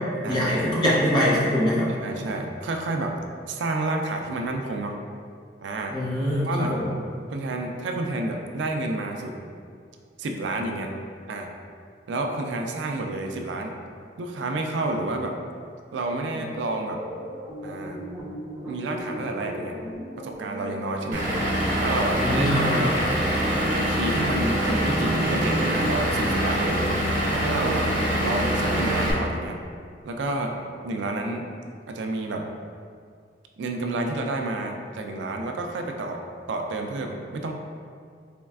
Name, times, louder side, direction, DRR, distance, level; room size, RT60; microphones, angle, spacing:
voice 1, 0.3-1.9 5.9-6.9 22.2-22.8, equal, 25° left, -7 dB, 0.8 m, -23 dB
voice 2, 2.0-3.1 3.5-4.9 5.6-6.0 6.4-6.8 7.3-9.3 10.2-10.9 11.3-11.5 12.1-13.8 14.2-15.3 15.9-17.0 17.6-18.0 18.7-19.8 20.2-21.3 21.8-23.0 23.7-26.8 27.3-27.9 28.2-29.6 30.0-30.5 30.8-31.5 31.9-32.4 33.6-36.2 36.5-37.5, right 2 dB, 80° right, 3 dB, 0.4 m, -29 dB
sound 1, 16.3-21.4, equal, 5° right, 1.2 m, -37 dB
Vehicle / Engine, 21.1-29.1, equal, 45° right, 0.7 m, -24 dB
4.3 x 3.1 x 2.4 m, 2.2 s
head